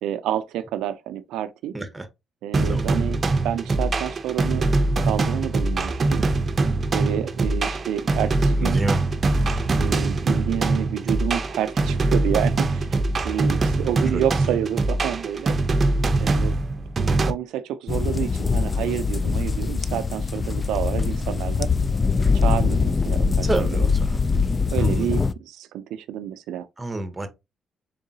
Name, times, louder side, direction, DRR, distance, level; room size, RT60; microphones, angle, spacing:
voice 1, 0.0-1.7 2.4-4.7 5.0-6.2 6.9-8.8 9.8-12.9 13.2-15.5 16.2-16.6 17.3-21.7 22.3-23.9 24.7-26.7, right 11 dB, 90° right, 0.3 m, -29 dB
voice 2, 1.7-2.1 2.7-3.0 8.6-9.0 14.1-14.2 23.4-24.2 24.8-25.1 26.8-27.3, right 2 dB, 15° right, 0.9 m, -29 dB
sound 1, 2.5-17.3, right 2 dB, 40° right, 0.6 m, -23 dB
sound 2, 17.9-25.3, left 4 dB, 30° left, 0.3 m, -22 dB
3.8 x 3.7 x 2.7 m
cardioid pair, 90°, 0 cm